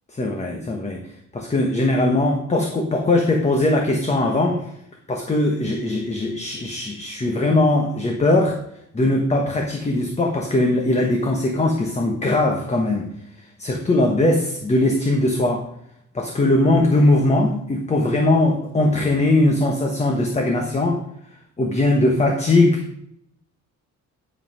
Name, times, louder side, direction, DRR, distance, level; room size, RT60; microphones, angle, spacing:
voice 1, 0.1-1.0 1.3-4.6 5.1-8.5 8.9-13.1 13.6-15.7 16.1-21.0 21.6-22.8, left 2 dB, 20° left, 2 dB, 1.1 m, -20 dB
10.5 x 5.5 x 5.4 m, 0.73 s
wide cardioid pair, 155°, 31 cm